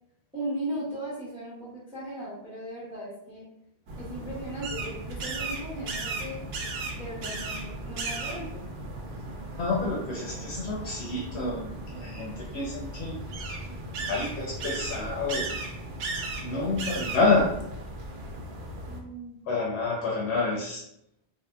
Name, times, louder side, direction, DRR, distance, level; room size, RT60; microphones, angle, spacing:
voice 1, 0.3-3.5 4.0-6.4 6.9-8.7 18.9-19.4, right 1 dB, 5° right, -8 dB, 0.7 m, -37 dB
sound 1, 3.9-19.0, right 2 dB, 75° right, 0.8 m, -36 dB
voice 2, 9.6-13.2 14.1-15.5 16.4-17.5 19.5-20.8, left 3 dB, 90° left, -3 dB, 0.9 m, -28 dB
3.6 x 2.1 x 2.2 m, 0.77 s
omnidirectional pair, 1.1 m